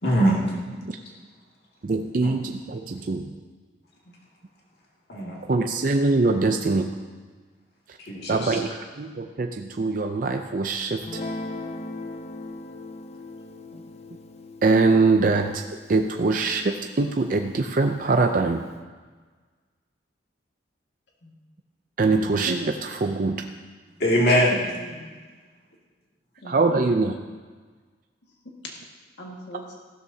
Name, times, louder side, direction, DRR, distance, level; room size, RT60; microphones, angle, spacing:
voice 1, 0.0-0.5 2.2-2.3 5.1-5.5 8.0-8.6 24.0-24.7, equal, 60° left, -4 dB, 2.2 m, -22 dB
voice 2, 1.8-3.3 5.5-6.9 8.3-11.0 14.6-15.6 15.9-18.6 22.0-23.4 26.5-27.1, right 3 dB, 50° right, 5 dB, 0.5 m, -23 dB
Guitar, 11.0-17.6, left 2 dB, 35° left, 0.6 m, -39 dB
voice 3, 24.6-25.1 26.4-26.9 28.5-28.6 29.2-29.8, equal, 80° left, -1 dB, 1.9 m, -42 dB
15.0 x 13.0 x 2.8 m, 1.4 s
head